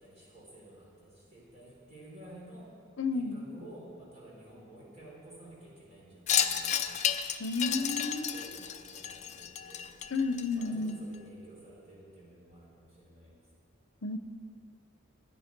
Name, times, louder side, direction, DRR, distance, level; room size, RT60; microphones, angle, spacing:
voice 1, 0.0-2.8 3.1-7.0 7.6-9.9 10.5-13.4, right 1 dB, 35° right, -5 dB, 4.0 m, -52 dB
voice 2, 3.0-3.5 7.4-8.6 10.1-11.1 14.0-14.2, left 3 dB, 70° left, 9 dB, 0.7 m, -32 dB
Wind chime, 6.3-10.9, left 9 dB, 35° left, 0.4 m, -32 dB
16.0 x 9.9 x 4.6 m, 2.2 s
head